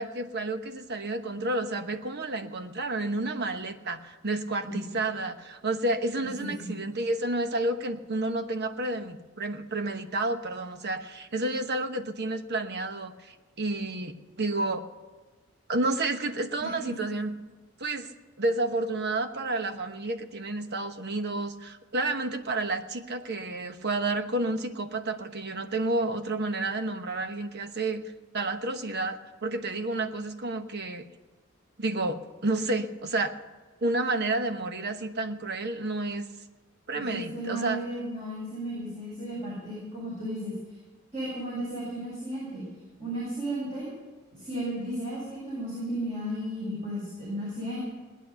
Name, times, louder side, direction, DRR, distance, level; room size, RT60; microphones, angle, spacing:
voice 1, 0.0-14.8 15.7-17.3 17.8-18.1 18.4-28.0 28.3-31.1 31.8-33.3 33.8-36.3 36.9-37.8, right 2 dB, 55° right, 8 dB, 1.1 m, -30 dB
voice 2, 6.4-6.7 16.6-16.9 36.9-40.5 41.1-42.6 43.0-43.9 44.3-47.8, right 1 dB, 35° right, -6 dB, 6.6 m, -34 dB
18.5 x 10.0 x 7.0 m, 1.3 s
head